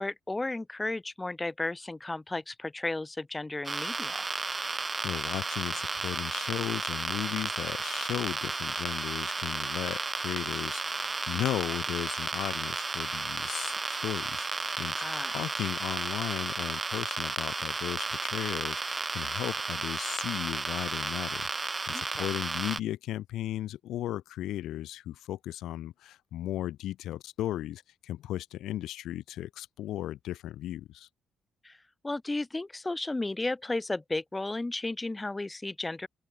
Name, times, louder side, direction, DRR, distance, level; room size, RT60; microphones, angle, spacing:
voice 1, 0.0-4.2 15.0-15.3 21.9-22.3 31.6-31.8 32.0-36.1, left 2 dB, 15° left, 4.8 m, -34 dB
sound 1, 3.6-22.8, right 3 dB, 25° right, 3.0 m, -33 dB
voice 2, 4.7-31.1, left 13 dB, 90° left, 6.0 m, -36 dB
open air
cardioid pair, 115°, 0 cm